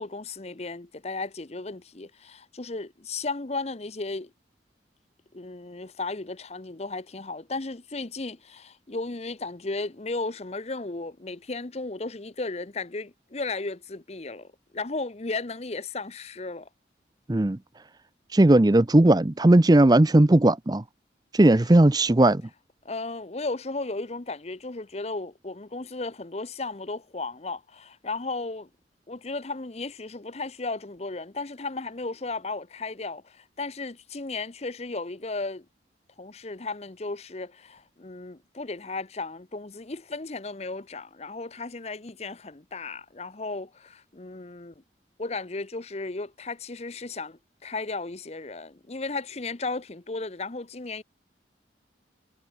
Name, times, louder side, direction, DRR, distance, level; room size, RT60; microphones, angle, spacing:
voice 1, 0.0-4.3 5.3-16.7 22.8-28.7 29.1-35.6 36.2-44.7 45.2-51.0, left 3 dB, 35° left, 0.8 m, -35 dB
voice 2, 18.3-20.8 21.3-22.4, right 1 dB, 20° right, 0.5 m, -17 dB
head